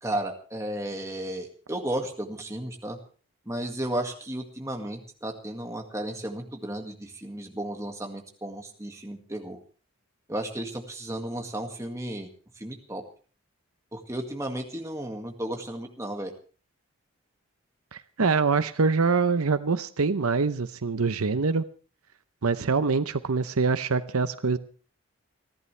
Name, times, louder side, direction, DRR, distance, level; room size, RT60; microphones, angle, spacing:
voice 1, 0.0-3.0 3.5-9.6 10.3-12.3 12.6-13.0 13.9-16.3, right 1 dB, 15° right, 3 dB, 2.0 m, -34 dB
voice 2, 17.9-21.6 22.4-24.6, right 4 dB, 80° right, 12 dB, 0.8 m, -24 dB
29.5 x 11.0 x 3.3 m, 0.39 s
head